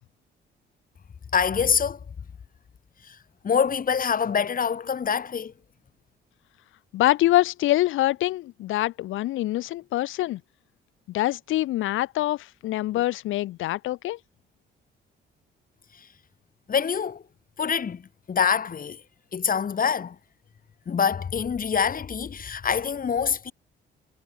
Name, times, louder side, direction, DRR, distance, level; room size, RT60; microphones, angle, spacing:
voice 1, 1.3-2.0 3.0-3.2 3.4-5.5 16.7-17.2 17.6-18.0 18.3-19.0 19.3-20.2 20.9-23.5, left 6 dB, 45° left, 3.8 m, -25 dB
voice 2, 6.9-10.4 11.1-14.2, left 15 dB, 80° left, 0.9 m, -25 dB
cardioid pair, 90°, 20 cm